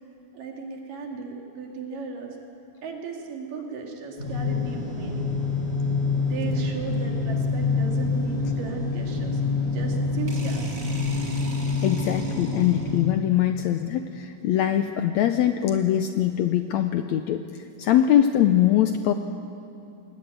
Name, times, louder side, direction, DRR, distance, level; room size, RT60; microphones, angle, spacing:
voice 1, 0.3-2.4 2.8-5.3 6.2-10.8, right 4 dB, 75° right, 1 dB, 4.1 m, -36 dB
sound 1, 4.2-13.0, left 3 dB, 25° left, 7.2 m, -26 dB
sound 2, 10.3-13.2, right 2 dB, 30° right, 2.2 m, -43 dB
voice 2, 11.8-17.4 17.8-19.1, left 11 dB, 80° left, 8 dB, 1.6 m, -22 dB
21.5 x 18.0 x 9.3 m, 2.7 s
omnidirectional pair, 3.8 m